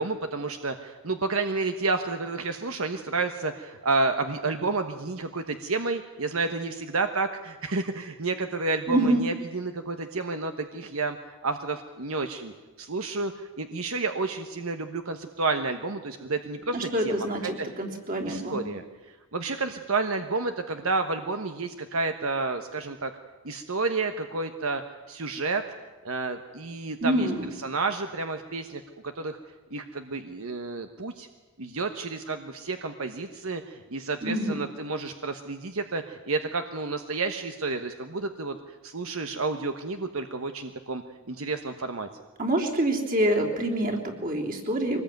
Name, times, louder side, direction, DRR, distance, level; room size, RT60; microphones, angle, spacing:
voice 1, 0.0-17.3 17.6-17.7 18.2-18.8 19.1-23.1 23.4-24.8 25.1-25.6 26.0-27.3 27.6-28.8 29.1-29.4 29.7-31.3 31.6-42.1, right 3 dB, 70° right, 7 dB, 1.2 m, -30 dB
voice 2, 8.9-9.2 16.7-18.7 27.0-27.5 34.2-34.6 42.4-45.0, right 1 dB, 40° right, 1 dB, 3.5 m, -26 dB
24.0 x 20.0 x 9.3 m, 1.2 s
head